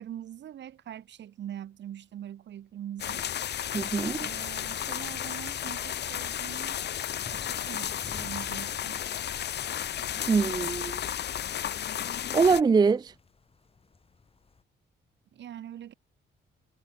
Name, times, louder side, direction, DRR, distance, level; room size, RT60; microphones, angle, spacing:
voice 1, 0.0-3.3 4.2-6.8 7.3-9.0 10.0-10.5 15.3-15.9, right 11 dB, 65° right, 1.5 m, -43 dB
sound 1, 3.0-12.6, left 10 dB, 60° left, 1.2 m, -33 dB
voice 2, 3.7-4.3 10.3-11.0 12.3-13.1, right 5 dB, 20° right, 0.4 m, -23 dB
sound 2, 7.2-14.6, left 4 dB, 30° left, 3.0 m, -53 dB
cardioid pair, 90°, 20 cm